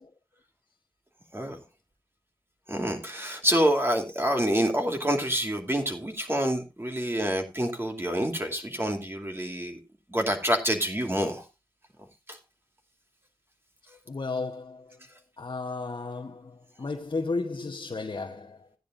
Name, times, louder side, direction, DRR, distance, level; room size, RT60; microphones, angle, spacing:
voice 1, 2.7-9.8 10.1-11.5 12.3-12.4 13.9-14.0, equal, 25° right, 2.7 m, -27 dB
voice 2, 14.1-15.0 15.4-18.7, left 3 dB, 70° left, 1.0 m, -34 dB
16.0 x 9.9 x 2.5 m
wide cardioid pair, 55°, 9 cm